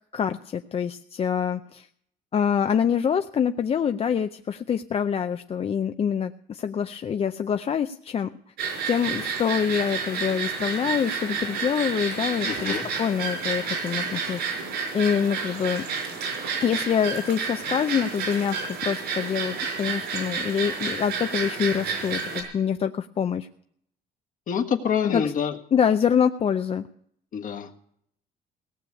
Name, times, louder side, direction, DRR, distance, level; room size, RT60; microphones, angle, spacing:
voice 1, 0.0-1.9 2.3-8.3 8.9-14.7 14.9-15.8 16.6-23.5 25.1-25.3 25.7-26.8, left 7 dB, 35° left, 8 dB, 0.5 m, -25 dB
sound 1, 8.6-22.4, right 5 dB, 85° right, 5.0 m, -30 dB
voice 2, 12.4-12.8 24.5-25.5 27.3-27.9, left 7 dB, 50° left, 4 dB, 1.5 m, -27 dB
18.0 x 6.9 x 8.2 m, 0.69 s
cardioid pair, 110°, 17 cm